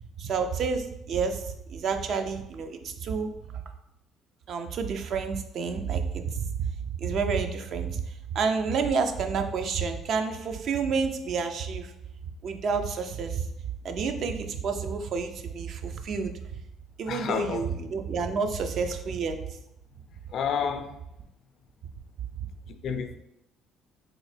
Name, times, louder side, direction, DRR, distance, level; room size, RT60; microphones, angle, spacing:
voice 1, 0.2-3.3 4.5-8.0 8.3-11.9 12.4-13.4 13.8-16.3 17.0-19.4, right 5 dB, 60° right, 6 dB, 0.4 m, -29 dB
voice 2, 17.1-17.6 20.3-20.9 22.8-23.2, left 7 dB, 60° left, 8 dB, 0.4 m, -29 dB
3.6 x 2.1 x 3.3 m, 0.83 s
supercardioid pair, 75°, 0 cm